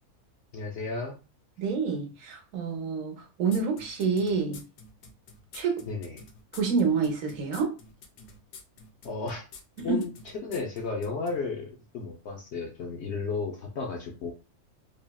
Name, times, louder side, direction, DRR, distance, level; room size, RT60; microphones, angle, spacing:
voice 1, 0.5-1.2 5.9-6.2 9.0-9.4 9.8-10.1 10.4-14.3, left 4 dB, 65° left, 0.7 m, -33 dB
voice 2, 1.6-4.6 5.5-5.8 6.5-7.8 9.8-10.0, right 5 dB, 65° right, 1.0 m, -28 dB
sound 1, 3.5-11.4, left 4 dB, 85° left, 1.1 m, -48 dB
3.3 x 2.0 x 2.2 m
omnidirectional pair, 1.6 m